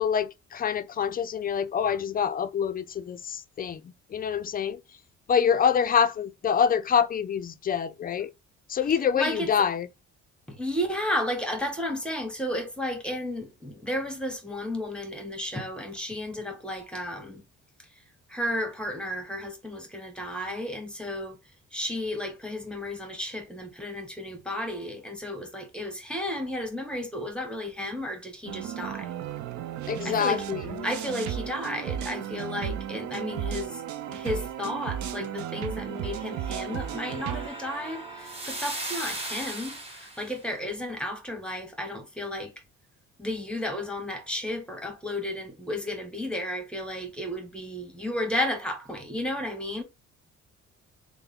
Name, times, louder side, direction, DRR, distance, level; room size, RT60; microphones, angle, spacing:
voice 1, 0.0-4.8 5.3-8.3 8.7-9.9 29.9-30.9, left 7 dB, 30° left, 0.4 m, -26 dB
voice 2, 9.1-9.5 10.5-17.4 18.3-21.4 21.7-29.1 30.0-30.5 30.8-33.8 34.1-42.5 43.2-49.8, left 1 dB, 5° left, 1.0 m, -33 dB
sound 1, 28.5-37.5, right 10 dB, 70° right, 0.5 m, -34 dB
sound 2, 35.7-40.4, right 2 dB, 20° right, 1.3 m, -38 dB
3.3 x 2.1 x 3.6 m
cardioid pair, 90°, 30 cm